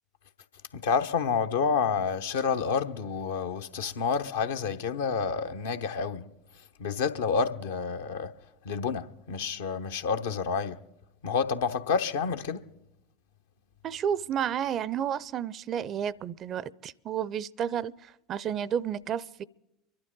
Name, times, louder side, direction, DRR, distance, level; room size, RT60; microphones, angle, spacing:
voice 1, 0.7-6.3 6.8-8.3 8.6-10.8 11.2-12.7, left 6 dB, 75° left, 0.8 m, -29 dB
voice 2, 13.8-19.4, right 9 dB, 45° right, 0.5 m, -31 dB
24.5 x 12.0 x 3.8 m
figure-of-eight pair, 75°, 0 cm